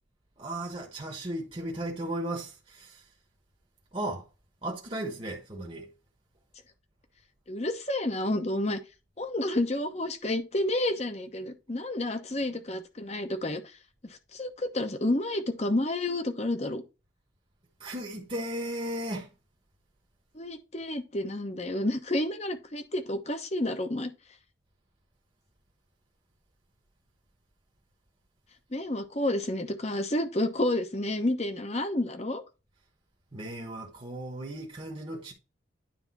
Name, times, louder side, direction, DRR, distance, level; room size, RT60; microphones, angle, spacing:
voice 1, 0.4-3.0 3.9-4.2 4.6-5.9 17.8-19.3 33.3-35.3, right 1 dB, 30° right, 1.1 m, -35 dB
voice 2, 7.5-8.8 9.2-13.6 14.1-16.8 20.3-24.1 28.7-32.4, left 1 dB, 35° left, 1.0 m, -30 dB
9.6 x 3.4 x 4.1 m
head